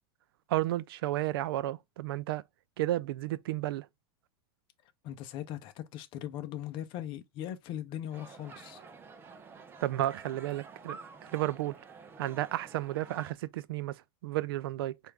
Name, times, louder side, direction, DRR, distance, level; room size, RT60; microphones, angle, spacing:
voice 1, 0.5-2.4 2.8-3.9 9.8-11.0 11.3-11.7 12.2-15.0, right 15 dB, 75° right, 0.4 m, -32 dB
voice 2, 5.0-8.8, left 11 dB, 40° left, 0.7 m, -39 dB
sound 1, 8.1-13.3, right 5 dB, 20° right, 0.5 m, -50 dB
4.4 x 2.5 x 3.2 m
supercardioid pair, 140°, 12 cm